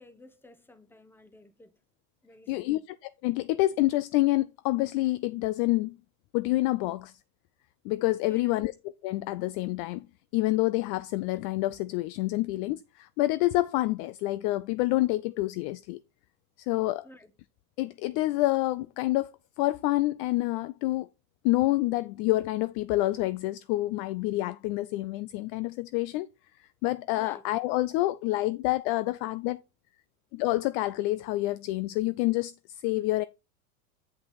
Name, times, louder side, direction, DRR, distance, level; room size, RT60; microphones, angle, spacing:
voice 1, 0.0-1.7 2.2-2.8 8.3-8.7 17.0-17.3 18.1-18.2 27.1-27.4, left 1 dB, 5° left, 1.1 m, -53 dB
voice 2, 2.5-2.8 3.2-6.0 6.3-7.1 7.8-8.7 9.0-10.1 10.3-16.0 16.6-17.1 17.8-19.3 19.6-21.1 21.4-26.3 26.6-29.6 30.3-33.2, left 18 dB, 40° left, 0.4 m, -27 dB
7.9 x 5.6 x 4.2 m
hypercardioid pair, 95°, 42 cm